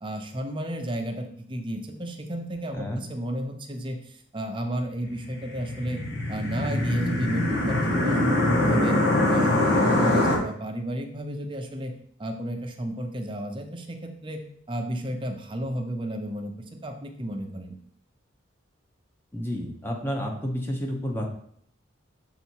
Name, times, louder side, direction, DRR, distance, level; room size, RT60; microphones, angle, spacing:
voice 1, 0.0-6.0 6.3-9.0 9.3-11.9 12.2-14.4 14.7-17.8, right 1 dB, 25° right, 4 dB, 0.7 m, -32 dB
sound 1, 5.2-10.4, left 1 dB, 55° left, 1.6 m, -23 dB
voice 2, 19.3-21.3, equal, 10° left, 0 dB, 1.0 m, -30 dB
6.9 x 4.0 x 4.6 m, 0.65 s
head